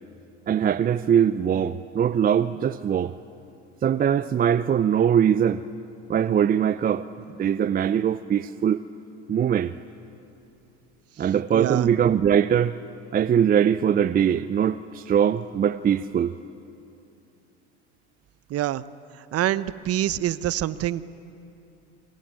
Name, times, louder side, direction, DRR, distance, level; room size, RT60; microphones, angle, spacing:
voice 1, 0.5-3.1 3.8-5.6 6.1-7.1 7.4-8.8 9.3-9.7 11.2-12.8 13.1-16.3, right 8 dB, 25° right, 14 dB, 0.6 m, -21 dB
voice 2, 11.5-11.9 18.5-18.8 19.3-21.0, right 13 dB, 40° right, 16 dB, 0.9 m, -25 dB
27.5 x 23.5 x 9.0 m, 2.8 s
hypercardioid pair, 90°, 36 cm